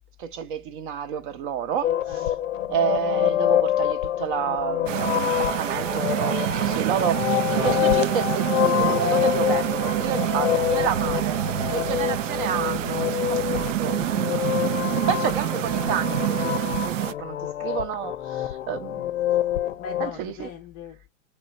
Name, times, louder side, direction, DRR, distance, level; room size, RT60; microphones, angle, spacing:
voice 1, 0.2-1.9 2.7-14.0 15.1-19.0 20.0-20.5, right 8 dB, 40° right, 0.6 m, -30 dB
sound 1, 1.8-20.1, left 12 dB, 90° left, 0.7 m, -26 dB
voice 2, 2.0-2.4 15.0-15.7 19.8-21.1, left 6 dB, 25° left, 0.5 m, -41 dB
sound 2, 4.9-17.1, right 12 dB, 80° right, 0.5 m, -26 dB
3.2 x 3.0 x 4.2 m
hypercardioid pair, 130°, 38 cm